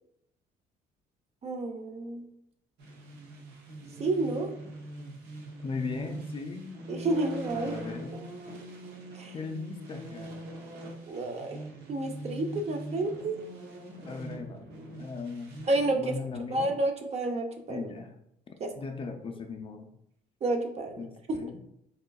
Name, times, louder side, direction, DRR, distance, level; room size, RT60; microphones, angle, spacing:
voice 1, 1.4-2.3 4.0-4.5 6.9-7.7 8.1-8.2 9.1-9.3 11.1-11.6 11.9-13.4 15.7-16.1 16.5-17.9 18.6-18.7 20.4-21.4, right 2 dB, 40° right, 4 dB, 0.7 m, -30 dB
sound 1, 2.8-15.9, right 1 dB, 85° right, 0.9 m, -42 dB
voice 2, 5.6-6.7 7.5-8.2 9.3-10.3 14.1-14.7 15.0-15.6 16.0-16.7 17.7-18.1 18.5-19.9 21.0-21.6, left 4 dB, 30° left, 5 dB, 0.5 m, -38 dB
4.2 x 3.7 x 2.3 m, 0.77 s
cardioid pair, 110°, 17 cm